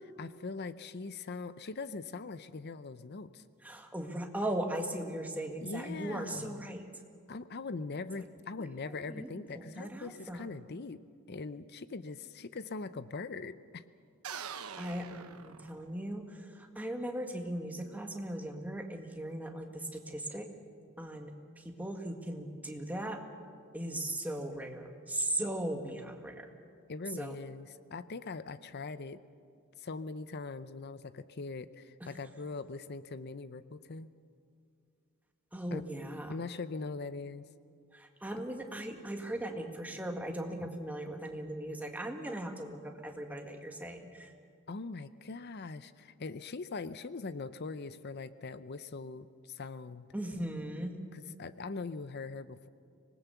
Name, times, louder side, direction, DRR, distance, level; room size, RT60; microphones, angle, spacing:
voice 1, 0.0-3.4 5.6-6.7 7.3-11.0 11.3-13.8 26.9-29.2 29.8-34.1 35.7-35.8 36.3-37.4 40.7-40.8 44.7-50.1 51.1-52.7, left 3 dB, 50° left, 14 dB, 0.6 m, -41 dB
voice 2, 3.6-6.8 8.6-10.4 14.7-20.5 21.0-23.2 23.7-26.5 27.2-27.4 35.5-36.3 37.9-44.3 50.1-50.9, right 1 dB, 5° right, 3 dB, 1.7 m, -38 dB
sound 1, 14.2-16.2, right 7 dB, 90° right, 1.0 m, -44 dB
25.0 x 19.5 x 7.0 m, 2.3 s
head